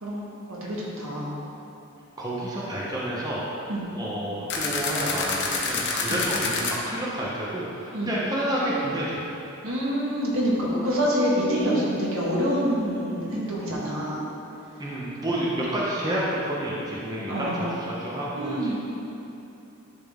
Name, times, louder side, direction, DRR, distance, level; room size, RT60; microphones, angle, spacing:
voice 1, 0.5-1.3 3.7-3.9 6.1-6.2 7.9-8.1 9.6-14.2 17.3-17.7 18.3-18.7, equal, 75° right, -5 dB, 1.5 m, -26 dB
voice 2, 2.2-3.4 3.9-9.2 14.8-18.7, right 1 dB, 20° right, -6 dB, 0.8 m, -29 dB
sound 1, 4.5-6.7, left 4 dB, 55° left, 0.8 m, -27 dB
10.5 x 3.7 x 3.6 m, 2.9 s
head